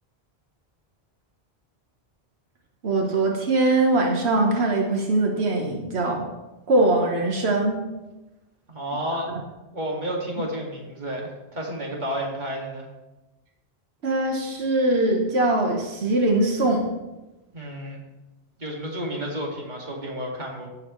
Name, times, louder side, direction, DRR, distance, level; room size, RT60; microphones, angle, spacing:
voice 1, 2.8-6.3 6.7-7.8 14.0-16.9, right 2 dB, 90° right, 1 dB, 1.4 m, -22 dB
voice 2, 8.7-9.4 9.7-12.9 17.5-18.0 18.6-20.7, equal, 45° right, -2 dB, 2.2 m, -31 dB
16.0 x 6.6 x 3.1 m, 1.0 s
omnidirectional pair, 1.0 m